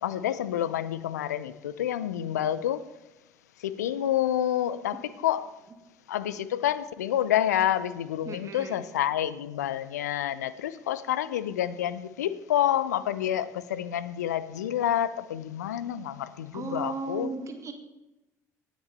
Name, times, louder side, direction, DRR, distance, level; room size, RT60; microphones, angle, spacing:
voice 1, 0.0-2.8 3.6-5.5 6.1-17.3, left 11 dB, 75° left, 0.5 m, -28 dB
voice 2, 8.3-8.8 16.5-17.7, right 3 dB, 35° right, 1.8 m, -35 dB
18.0 x 6.1 x 4.2 m
figure-of-eight pair, 55°, 9 cm